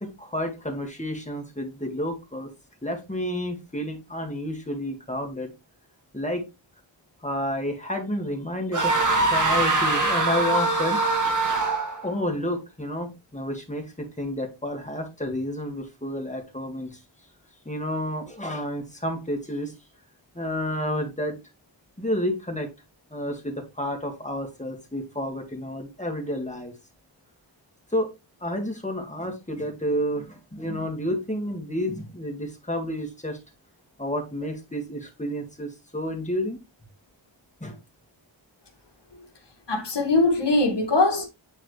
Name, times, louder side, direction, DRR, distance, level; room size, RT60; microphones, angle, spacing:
voice 1, 0.0-2.5 2.8-5.5 6.1-6.4 7.2-8.9 9.2-11.0 11.2-11.5 12.0-17.0 17.7-19.7 20.4-21.4 22.0-22.7 23.1-26.7 27.9-28.1 28.4-33.4 34.0-36.6 37.6-37.8, equal, 15° left, 2.0 m, -30 dB
sound 1, 8.7-12.1, right 3 dB, 40° right, 1.7 m, -23 dB
voice 2, 39.7-41.3, left 2 dB, 60° left, 2.1 m, -21 dB
9.1 x 4.1 x 3.2 m
wide cardioid pair, 75°, 47 cm